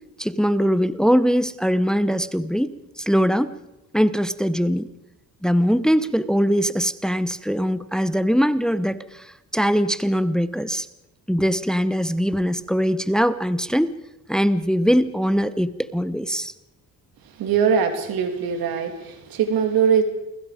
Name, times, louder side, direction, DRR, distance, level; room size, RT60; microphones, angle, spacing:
voice 1, 0.2-3.5 3.9-4.9 5.4-10.9 11.3-13.9 14.3-16.5, equal, ahead, 14 dB, 1.0 m, -21 dB
voice 2, 17.4-20.0, right 7 dB, 90° right, 7 dB, 3.1 m, -21 dB
29.0 x 21.5 x 5.2 m, 0.93 s
cardioid pair, 80°, 35 cm